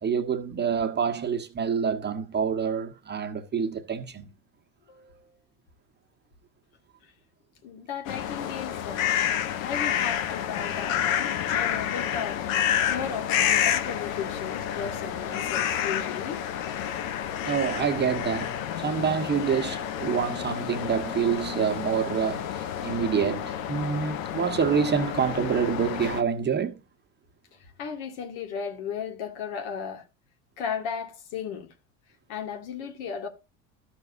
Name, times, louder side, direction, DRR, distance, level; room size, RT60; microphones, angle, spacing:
voice 1, 0.0-4.2 17.4-26.8, right 7 dB, 25° right, 1.2 m, -27 dB
voice 2, 4.9-5.3 7.6-12.4 12.9-16.4 27.8-30.1 30.6-31.7 32.3-33.3, left 7 dB, 70° left, 1.8 m, -35 dB
sound 1, 8.1-26.2, left 10 dB, 85° left, 0.9 m, -29 dB
12.5 x 6.1 x 2.6 m
supercardioid pair, 95°, 39 cm